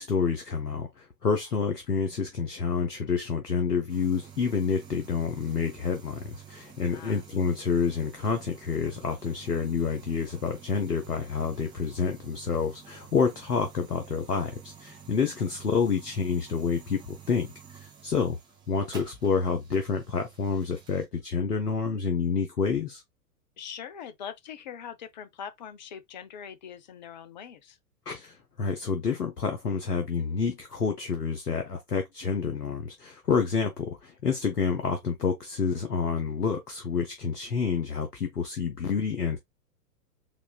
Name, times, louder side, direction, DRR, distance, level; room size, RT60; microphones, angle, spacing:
voice 1, 0.0-17.5 17.7-18.4 18.7-23.0 28.1-39.4, left 5 dB, 80° left, 0.9 m, -28 dB
sound 1, 3.9-21.1, right 7 dB, 10° right, 0.9 m, -50 dB
voice 2, 6.9-7.2 23.6-27.8, left 8 dB, 30° left, 0.5 m, -42 dB
4.1 x 3.3 x 2.3 m
figure-of-eight pair, 105°, 47 cm